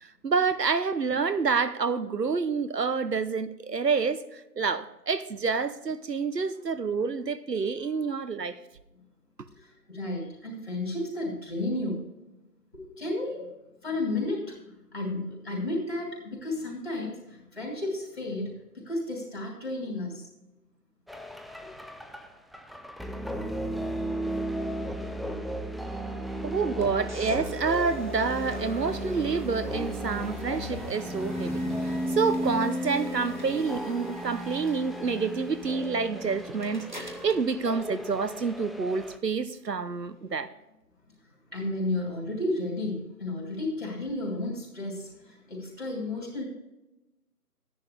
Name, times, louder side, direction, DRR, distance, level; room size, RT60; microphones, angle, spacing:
voice 1, 0.0-8.6 26.4-31.6 32.1-40.5, right 5 dB, 80° right, 0.9 m, -28 dB
voice 2, 9.5-12.0 12.7-13.5 13.8-20.3 21.6-21.7 40.2-40.3 41.5-46.4, left 2 dB, 40° left, 3.3 m, -33 dB
sound 1, 21.1-39.2, equal, ahead, 0.4 m, -35 dB
sound 2, 26.8-38.8, equal, 30° right, 1.0 m, -45 dB
12.0 x 10.5 x 3.3 m
figure-of-eight pair, 165°, 48 cm